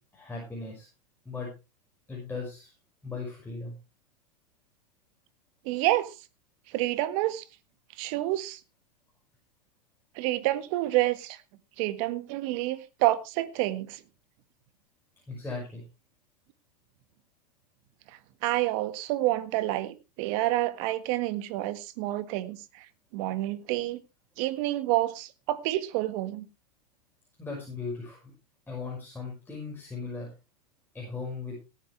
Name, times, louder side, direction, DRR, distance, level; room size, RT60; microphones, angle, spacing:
voice 1, 0.1-0.9 1.3-1.5 2.1-2.7 3.0-3.7 12.7-12.8 15.3-15.8 27.4-28.3 28.7-30.3 30.9-31.5, left 4 dB, 10° left, 5.9 m, -37 dB
voice 2, 5.6-6.1 6.7-7.4 8.0-8.6 10.1-11.4 11.8-14.0 18.4-22.8 23.1-24.0 24.4-26.4, right 16 dB, 55° right, 1.6 m, -28 dB
18.0 x 9.2 x 3.3 m
hypercardioid pair, 105°, 21 cm